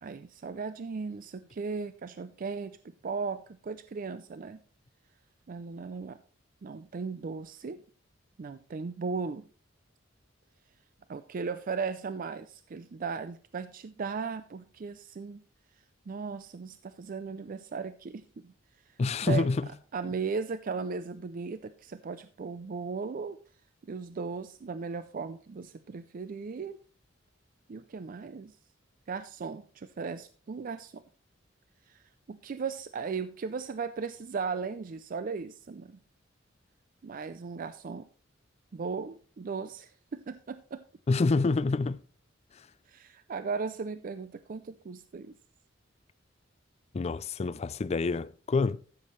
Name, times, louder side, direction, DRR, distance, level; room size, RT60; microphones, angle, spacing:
voice 1, 0.0-4.6 5.5-6.2 6.6-7.8 8.4-9.5 11.1-15.4 16.1-18.5 18.9-19.0 19.2-19.5 19.9-23.4 23.8-26.8 27.7-28.6 29.1-31.0 31.9-36.0 37.0-38.1 38.7-40.8 42.9-45.4, right 5 dB, 45° right, 0.4 m, -37 dB
voice 2, 19.0-19.7 41.1-42.0 46.9-48.8, left 3 dB, 35° left, 0.4 m, -27 dB
14.0 x 7.4 x 3.1 m
head